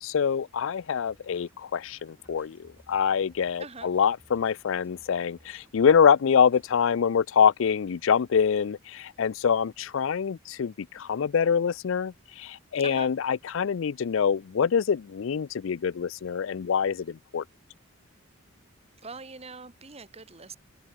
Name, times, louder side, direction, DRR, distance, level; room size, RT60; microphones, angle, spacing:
voice 1, 0.0-17.4, left 7 dB, 65° left, 0.4 m, -25 dB
sound 1, 1.1-6.7, equal, 10° right, 5.3 m, -61 dB
voice 2, 3.6-3.9 12.8-13.1 19.0-20.6, right 4 dB, 30° right, 1.7 m, -43 dB
open air
head